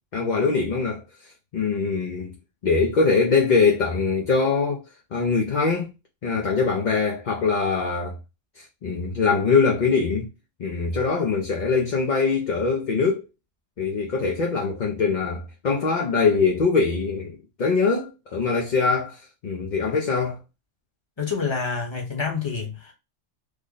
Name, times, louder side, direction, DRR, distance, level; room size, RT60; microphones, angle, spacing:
voice 1, 0.1-2.4 2.6-4.8 5.1-5.9 6.2-8.2 8.6-10.3 10.6-13.2 13.8-20.4, left 4 dB, 50° left, 0.6 m, -23 dB
voice 2, 21.2-22.9, left 5 dB, 25° left, 1.0 m, -27 dB
3.3 x 2.1 x 3.8 m
omnidirectional pair, 1.2 m